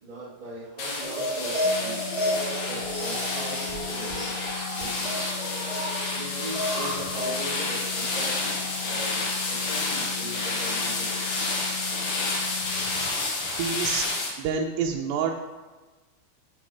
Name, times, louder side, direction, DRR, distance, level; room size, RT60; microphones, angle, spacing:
voice 1, 0.0-4.3 4.7-5.3 6.1-11.8, right 1 dB, 40° right, -7 dB, 0.6 m, -40 dB
sound 1, 0.8-14.3, left 3 dB, 55° left, 2.7 m, -30 dB
sound 2, 1.0-9.1, equal, 20° right, 0.9 m, -33 dB
sound 3, 1.6-13.1, left 11 dB, 85° left, 2.7 m, -40 dB
voice 2, 13.1-14.0 14.4-15.3, right 6 dB, 80° right, 1 dB, 2.7 m, -28 dB
9.8 x 5.7 x 4.9 m, 1.2 s
omnidirectional pair, 5.0 m